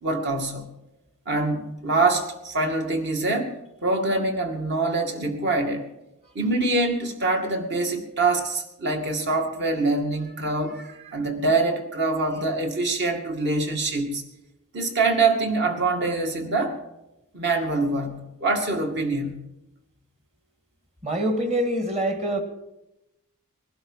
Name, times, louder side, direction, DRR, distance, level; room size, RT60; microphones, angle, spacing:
voice 1, 0.0-0.7 1.3-3.5 3.8-5.9 6.3-14.2 14.7-16.8 17.3-19.5, right 3 dB, 50° right, 4 dB, 2.3 m, -25 dB
voice 2, 21.0-22.4, right 1 dB, 30° right, 7 dB, 2.0 m, -25 dB
20.5 x 12.0 x 5.6 m, 0.93 s
head